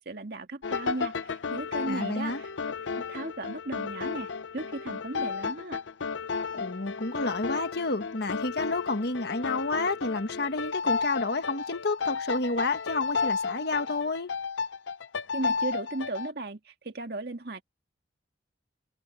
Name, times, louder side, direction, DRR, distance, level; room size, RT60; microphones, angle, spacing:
voice 1, 0.0-2.5 3.0-5.8 15.3-17.6, right 2 dB, 60° right, 2.0 m, -36 dB
sound 1, 0.6-16.3, left 5 dB, 80° left, 0.7 m, -33 dB
voice 2, 1.9-2.4 6.5-14.3, left 3 dB, 60° left, 1.5 m, -30 dB
head